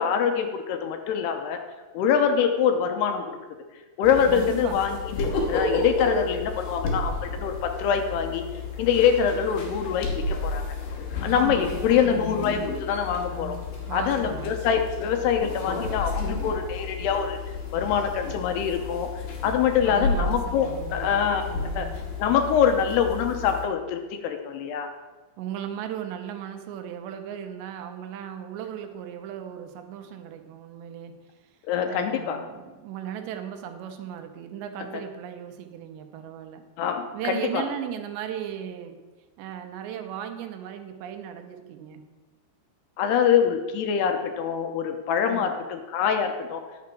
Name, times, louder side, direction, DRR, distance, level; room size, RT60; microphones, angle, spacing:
voice 1, 0.0-1.6 1.9-3.4 4.0-8.5 8.8-10.7 11.2-13.6 13.9-17.4 17.7-19.1 19.4-21.5 21.8-21.9 22.2-24.9 31.7-32.4 36.8-37.6 43.0-46.6, left 7 dB, 80° left, 5 dB, 2.8 m, -24 dB
sound 1, 4.0-23.6, left 3 dB, 55° left, 2.9 m, -32 dB
voice 2, 4.3-4.8 11.2-11.7 13.9-14.6 19.8-21.2 21.5-22.1 25.4-31.1 31.8-36.6 37.1-39.0 39.4-42.0 45.3-45.6, right 9 dB, 85° right, 6 dB, 3.1 m, -36 dB
10.5 x 7.1 x 5.9 m, 1.2 s
omnidirectional pair, 5.0 m